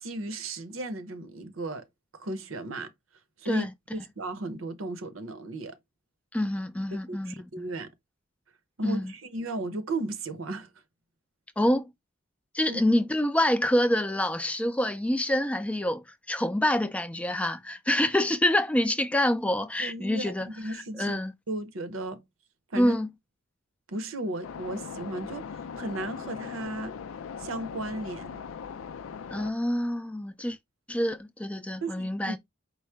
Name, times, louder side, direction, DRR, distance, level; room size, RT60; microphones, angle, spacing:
voice 1, 0.0-1.8 2.1-2.9 3.4-5.8 6.9-7.9 8.8-10.7 12.7-12.8 19.8-21.2 21.5-22.2 22.7-23.0 23.9-27.0 27.4-28.4 31.8-32.4, right 2 dB, 85° right, 0.8 m, -35 dB
voice 2, 6.3-7.7 8.8-9.1 11.6-11.9 12.5-21.3 22.7-23.1 29.3-30.6 30.9-32.4, left 1 dB, 5° left, 0.3 m, -27 dB
sound 1, 24.4-29.5, left 6 dB, 90° left, 0.4 m, -39 dB
4.7 x 2.0 x 4.4 m
head